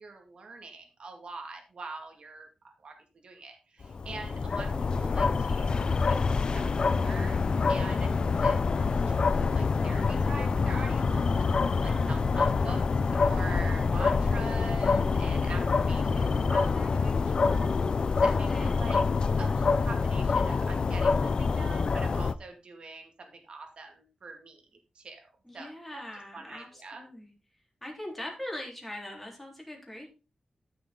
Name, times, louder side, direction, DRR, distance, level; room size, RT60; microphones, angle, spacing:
voice 1, 0.0-2.5 2.8-6.2 6.5-7.4 7.7-12.8 13.2-19.0 19.4-24.6 24.9-26.0 26.3-27.0, right 3 dB, 55° right, 3 dB, 2.2 m, -44 dB
sound 1, 3.8-22.3, left 4 dB, 45° left, 0.4 m, -26 dB
voice 2, 11.8-12.3 18.2-18.8 25.4-27.3 27.8-30.1, left 1 dB, 5° left, -1 dB, 3.7 m, -41 dB
13.0 x 6.8 x 3.8 m, 0.31 s
wide cardioid pair, 160°, 2 cm